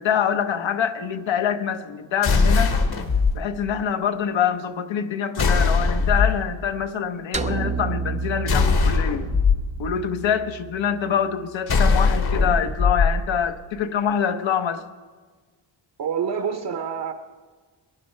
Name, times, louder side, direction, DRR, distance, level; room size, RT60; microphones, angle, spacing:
voice 1, 0.0-2.7 3.3-9.3 9.8-14.8, left 8 dB, 75° left, 1.0 m, -25 dB
sound 1, 2.2-3.3 5.4-6.4 8.5-9.6 11.7-13.1, left 4 dB, 55° left, 1.3 m, -20 dB
sound 2, 7.3-11.7, right 4 dB, 15° right, 0.3 m, -31 dB
voice 2, 16.0-17.1, right 7 dB, 60° right, 1.0 m, -27 dB
21.5 x 10.5 x 4.4 m
wide cardioid pair, 115°, 46 cm